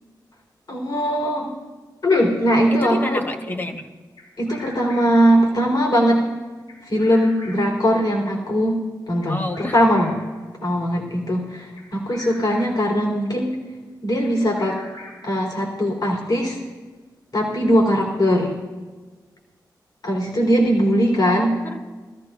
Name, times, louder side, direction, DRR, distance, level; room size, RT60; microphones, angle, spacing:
voice 1, 0.7-1.5 2.0-3.2 4.4-6.3 6.8-8.8 9.1-9.4 9.7-10.1 10.6-13.6 14.0-14.8 15.2-16.6 17.3-18.5 20.0-21.5, equal, 55° left, 0 dB, 3.8 m, -20 dB
voice 2, 2.7-3.8 9.3-9.8 20.9-21.8, left 1 dB, 25° left, 4 dB, 1.3 m, -29 dB
Bird vocalization bird call bird song, 4.2-5.3 6.7-7.8 9.2-10.4 11.8-12.9 14.2-15.4, left 1 dB, 80° left, 4.9 m, -42 dB
21.0 x 14.5 x 2.5 m, 1.3 s
cardioid pair, 75°, 8 cm